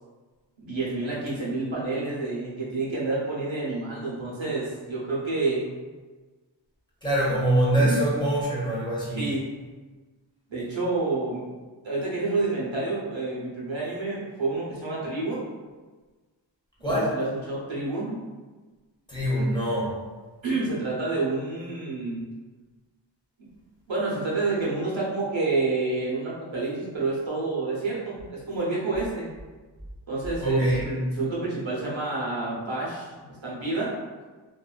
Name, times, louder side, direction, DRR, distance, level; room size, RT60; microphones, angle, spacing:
voice 1, 0.6-5.7 7.7-8.1 9.2-9.4 10.5-11.4 11.8-15.5 16.8-18.2 20.4-22.2 23.4-23.5 23.9-29.3 30.1-33.9, right 3 dB, 75° right, -6 dB, 0.8 m, -29 dB
voice 2, 7.0-9.3 16.8-17.2 19.1-20.0 30.4-30.9, right 1 dB, 10° left, -8 dB, 0.8 m, -24 dB
2.6 x 2.3 x 2.2 m, 1.3 s
wide cardioid pair, 45°, 46 cm